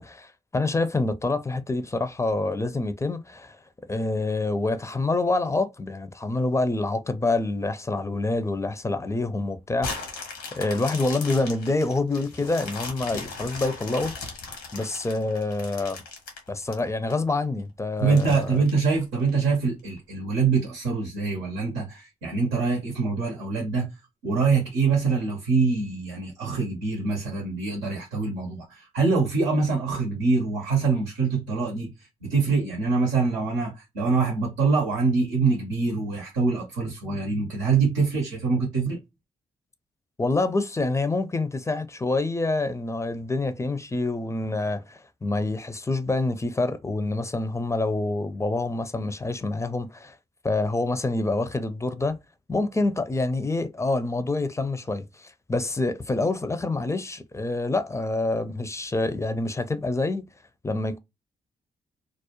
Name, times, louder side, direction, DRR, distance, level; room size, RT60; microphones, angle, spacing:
voice 1, 0.0-3.6 3.9-10.2 10.5-14.1 14.7-16.0 16.5-18.6 40.2-50.2 50.4-52.2 52.5-60.3 60.6-61.0, left 2 dB, 15° left, 0.4 m, -27 dB
sound 1, 9.8-17.1 17.6-17.7 18.1-19.4 20.0-20.1, left 4 dB, 80° left, 0.9 m, -37 dB
voice 2, 18.0-23.9 24.2-31.9 32.2-39.0, right 4 dB, 90° right, 0.7 m, -24 dB
2.4 x 2.0 x 2.9 m
hypercardioid pair, 40°, 18 cm